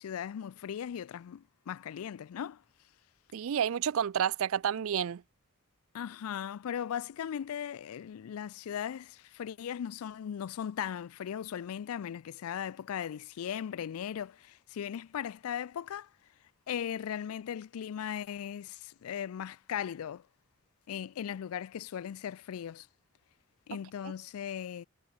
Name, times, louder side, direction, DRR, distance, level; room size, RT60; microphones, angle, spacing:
voice 1, 0.0-2.6 5.9-16.1 16.7-20.2 20.9-22.9 23.7-24.9, left 9 dB, 85° left, 0.4 m, -38 dB
voice 2, 3.3-5.2 23.7-23.8 24.0-24.1, right 8 dB, 70° right, 0.4 m, -30 dB
head